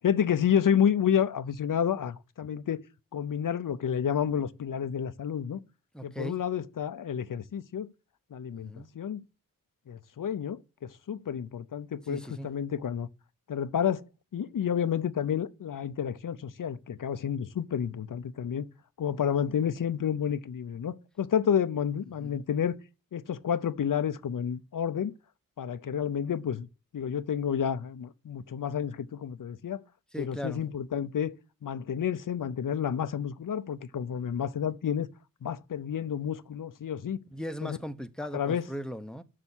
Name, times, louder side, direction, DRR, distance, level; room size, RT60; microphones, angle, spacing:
voice 1, 0.0-2.8 3.1-5.6 6.0-7.9 8.3-9.2 9.9-13.1 13.5-14.0 14.3-18.7 19.0-22.8 23.1-25.1 25.6-26.7 26.9-29.8 30.2-31.3 31.6-35.1 35.4-37.2 37.6-37.8 38.3-38.7, left 8 dB, 70° left, 0.6 m, -30 dB
voice 2, 5.9-6.4 8.6-8.9 12.1-12.5 22.2-22.4 30.1-30.6 37.3-39.2, equal, ahead, 0.9 m, -38 dB
6.7 x 6.3 x 7.2 m
cardioid pair, 55°, 34 cm